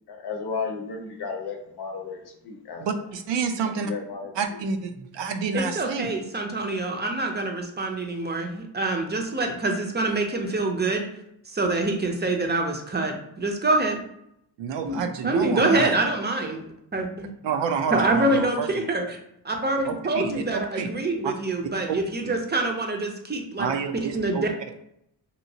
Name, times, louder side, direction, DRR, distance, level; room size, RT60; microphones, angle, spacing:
voice 1, 0.1-2.9 3.6-4.6, left 5 dB, 60° left, 3 dB, 0.7 m, -34 dB
voice 2, 2.8-3.9 4.4-6.1 14.6-15.9 17.4-18.9 19.9-20.4 20.8-20.9 21.2-21.3 23.6-24.4, right 6 dB, 80° right, 6 dB, 0.5 m, -28 dB
voice 3, 5.5-11.1 11.5-14.0 14.8-16.6 16.9-17.3 17.9-19.2 19.4-23.7 24.0-24.7, right 2 dB, 25° right, 2 dB, 0.5 m, -26 dB
3.0 x 2.7 x 2.7 m, 0.76 s
cardioid pair, 80°, 43 cm